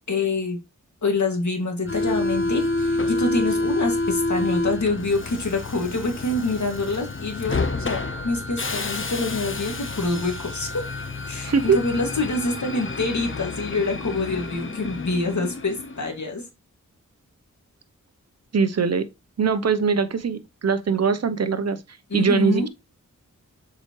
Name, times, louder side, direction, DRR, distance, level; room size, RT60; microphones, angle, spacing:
voice 1, 0.1-0.6 1.0-10.9 11.3-16.5 22.1-22.7, left 3 dB, 65° left, 2.2 m, -26 dB
Subway metro underground, 1.9-16.2, left 2 dB, 40° left, 1.0 m, -28 dB
voice 2, 11.5-11.8 18.5-19.1 19.4-21.8 22.1-22.7, right 5 dB, 55° right, 0.8 m, -21 dB
7.1 x 4.9 x 3.1 m
cardioid pair, 50°, 32 cm